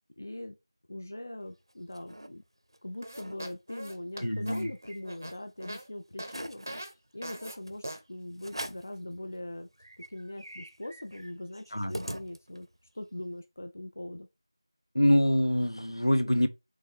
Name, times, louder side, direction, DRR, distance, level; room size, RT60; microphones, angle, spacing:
voice 1, 0.2-0.6 0.9-2.4 2.8-6.6 7.1-9.7 10.1-12.7 12.9-14.3, left 1 dB, 30° left, 0.4 m, -41 dB
sound 1, 1.5-2.3 2.7-2.8 3.0-3.4 3.8-5.4 5.8-5.9 6.2-6.9 7.7-7.8 8.4-9.0 9.4-9.5 9.8-12.8, right 1 dB, 75° right, 0.7 m, -44 dB
sound 2, 3.0-5.9 6.2-6.3 6.7-6.9 7.2-7.6 7.8-8.0, right 1 dB, 35° right, 0.6 m, -41 dB
voice 2, 4.2-4.7 11.7-12.0 14.9-16.5, left 1 dB, 85° left, 0.8 m, -25 dB
4.1 x 3.3 x 3.4 m
figure-of-eight pair, 175°, 3 cm